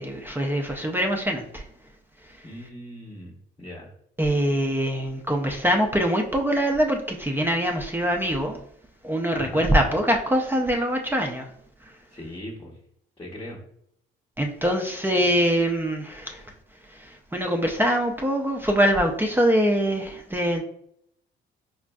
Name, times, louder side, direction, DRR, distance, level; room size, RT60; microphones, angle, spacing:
voice 1, 0.0-1.6 4.2-8.6 9.0-11.5 14.4-16.4 16.9-20.6, equal, 10° right, 2 dB, 0.5 m, -23 dB
voice 2, 2.4-3.9 9.3-9.7 12.1-12.8 13.2-13.6, left 1 dB, 15° left, -3 dB, 0.8 m, -39 dB
5.0 x 2.4 x 2.2 m, 0.70 s
cardioid pair, 90°, 20 cm